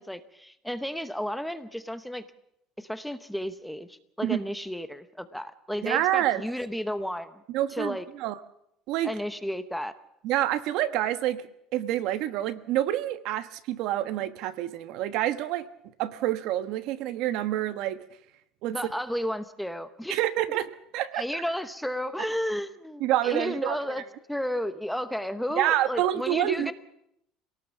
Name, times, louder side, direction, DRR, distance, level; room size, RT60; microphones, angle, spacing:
voice 1, 0.0-2.2 2.8-7.4 7.7-8.0 9.0-9.9 18.7-20.2 21.1-26.7, equal, ahead, 10 dB, 0.8 m, -32 dB
voice 2, 5.8-6.4 7.5-8.4 8.9-9.1 10.2-11.4 11.7-15.7 16.0-18.0 18.6-18.8 20.1-21.4 23.0-23.8 25.6-26.7, right 13 dB, 55° right, 12 dB, 1.2 m, -27 dB
26.5 x 18.0 x 7.2 m, 0.77 s
cardioid pair, 175°, 0 cm